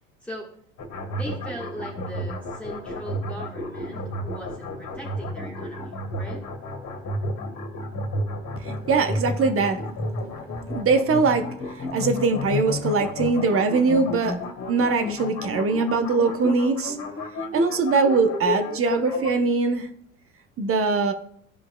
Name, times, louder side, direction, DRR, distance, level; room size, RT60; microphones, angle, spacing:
sound 1, 0.8-19.3, left 1 dB, 40° left, 2.2 m, -31 dB
voice 1, 1.1-6.4, equal, 5° left, -3 dB, 1.4 m, -39 dB
voice 2, 8.6-9.8 10.7-11.5 11.8-14.4 14.7-17.0 17.5-19.9 20.6-21.1, right 4 dB, 30° right, 7 dB, 0.9 m, -22 dB
14.0 x 5.0 x 2.2 m, 0.64 s
hypercardioid pair, 75°, 42 cm